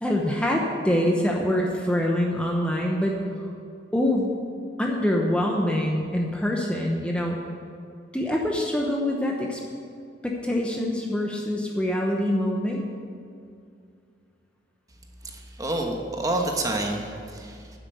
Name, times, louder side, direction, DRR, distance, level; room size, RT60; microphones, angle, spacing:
voice 1, 0.0-3.2 3.9-4.3 4.8-7.4 8.1-9.6 10.2-12.8, left 1 dB, 5° left, -1 dB, 0.9 m, -25 dB
voice 2, 15.2-17.8, right 1 dB, 20° right, 2 dB, 1.1 m, -29 dB
9.8 x 7.9 x 6.9 m, 2.4 s
head